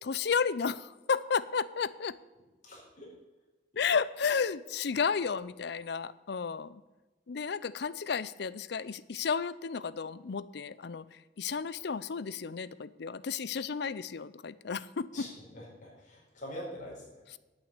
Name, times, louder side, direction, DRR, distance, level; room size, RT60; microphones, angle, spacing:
voice 1, 0.0-2.2 3.8-6.8 7.3-15.3 17.3-17.4, left 6 dB, 65° left, 17 dB, 0.5 m, -32 dB
voice 2, 2.6-3.1 15.1-17.2, left 1 dB, 45° left, -3 dB, 4.8 m, -44 dB
9.1 x 8.9 x 8.2 m, 1.2 s
head